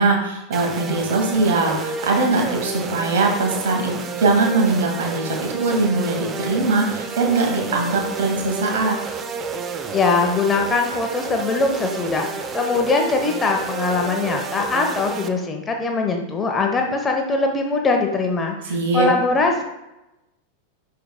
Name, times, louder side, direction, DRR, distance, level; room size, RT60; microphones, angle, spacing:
voice 1, 0.0-3.9 4.2-9.0 18.6-19.1, right 3 dB, 60° right, 1 dB, 1.8 m, -21 dB
sound 1, 0.5-15.3, right 4 dB, 25° right, 0.7 m, -30 dB
voice 2, 9.9-19.6, left 3 dB, 20° left, 3 dB, 0.9 m, -22 dB
11.0 x 4.7 x 2.2 m, 0.94 s
figure-of-eight pair, 90°, 0 cm